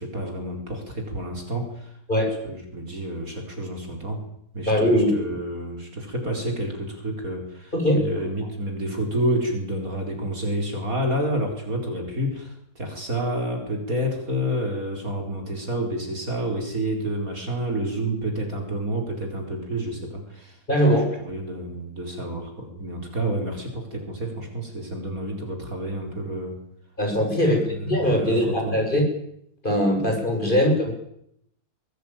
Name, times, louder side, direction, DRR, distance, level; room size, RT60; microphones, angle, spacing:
voice 1, 0.0-2.0 2.4-4.2 4.5-20.6 21.2-26.6 27.4-28.8 30.5-30.6, right 1 dB, 45° right, 3 dB, 4.6 m, -29 dB
voice 2, 4.6-5.2 7.7-8.0 20.7-21.1 27.0-29.0 29.6-30.9, equal, 25° left, 1 dB, 6.8 m, -21 dB
23.0 x 17.5 x 9.1 m, 0.75 s
omnidirectional pair, 2.0 m